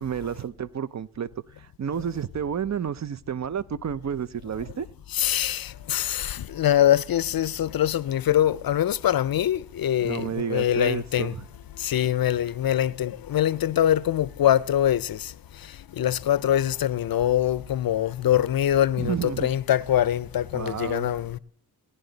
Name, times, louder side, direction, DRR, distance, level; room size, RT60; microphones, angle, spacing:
voice 1, 0.0-1.3 1.6-4.9 10.0-11.4 19.0-19.5 20.5-21.1, right 8 dB, 45° right, 0.5 m, -31 dB
voice 2, 5.1-11.3 11.8-15.2 16.0-21.4, left 11 dB, 65° left, 0.5 m, -23 dB
17.5 x 10.0 x 3.9 m
cardioid pair, 70°, 39 cm